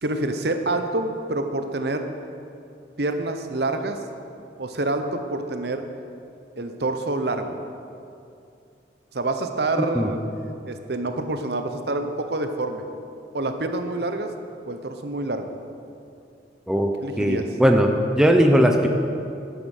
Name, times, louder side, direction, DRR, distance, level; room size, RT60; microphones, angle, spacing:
voice 1, 0.0-2.1 3.0-4.0 4.6-5.8 6.6-7.6 9.1-10.2 10.6-12.8 13.3-14.3 14.7-15.5 17.0-17.6, right 2 dB, 60° right, 7 dB, 0.8 m, -27 dB
voice 2, 9.8-10.1 16.7-16.9 17.2-18.9, equal, 5° right, 3 dB, 0.7 m, -19 dB
11.5 x 9.4 x 6.4 m, 2.6 s
head